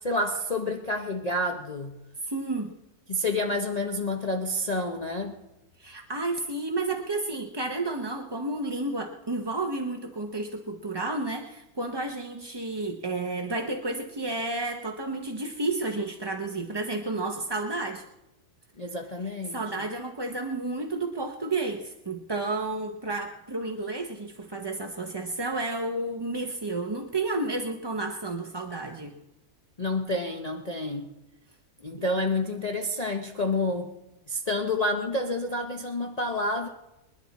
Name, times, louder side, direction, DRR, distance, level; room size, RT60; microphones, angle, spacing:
voice 1, 0.0-2.0 3.1-5.3 18.8-19.8 29.8-31.1 31.8-33.9 34.3-36.7, left 2 dB, 30° left, 2 dB, 0.9 m, -29 dB
voice 2, 2.2-2.7 5.8-18.0 19.5-29.1, right 2 dB, 25° right, 3 dB, 0.7 m, -31 dB
26.5 x 10.5 x 4.2 m, 0.94 s
omnidirectional pair, 1.6 m